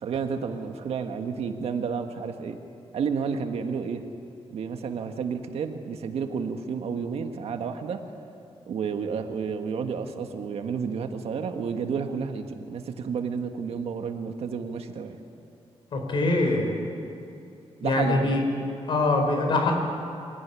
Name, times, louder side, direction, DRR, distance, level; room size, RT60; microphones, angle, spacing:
voice 1, 0.0-2.6 2.9-4.0 4.5-8.0 8.7-15.2 17.8-18.3, right 6 dB, 75° right, 6 dB, 1.7 m, -31 dB
voice 2, 15.9-16.8 17.8-18.5 18.9-19.7, left 2 dB, 55° left, 3 dB, 4.5 m, -23 dB
24.5 x 17.5 x 9.9 m, 2.7 s
wide cardioid pair, 175°, 11 cm